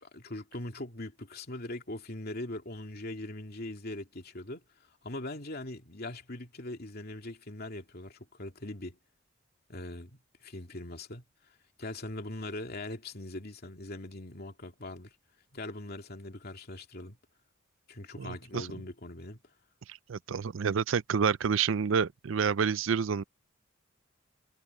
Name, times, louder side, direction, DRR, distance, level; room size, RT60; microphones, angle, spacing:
voice 1, 0.0-4.6 5.0-9.0 9.7-11.2 11.8-15.1 15.5-17.2 17.9-19.4, left 1 dB, 50° left, 2.7 m, -41 dB
voice 2, 18.2-18.7 19.9-23.2, right 6 dB, 70° right, 0.5 m, -29 dB
head